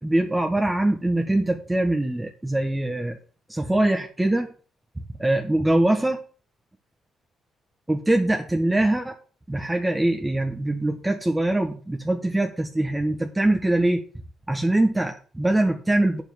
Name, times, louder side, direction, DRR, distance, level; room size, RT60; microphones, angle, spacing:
voice 1, 0.0-3.2 3.5-4.5 5.2-6.2 7.9-9.2 9.5-14.0 14.5-16.2, right 1 dB, 10° right, 3 dB, 1.4 m, -23 dB
8.8 x 7.3 x 7.2 m, 0.40 s
cardioid pair, 90°, 0 cm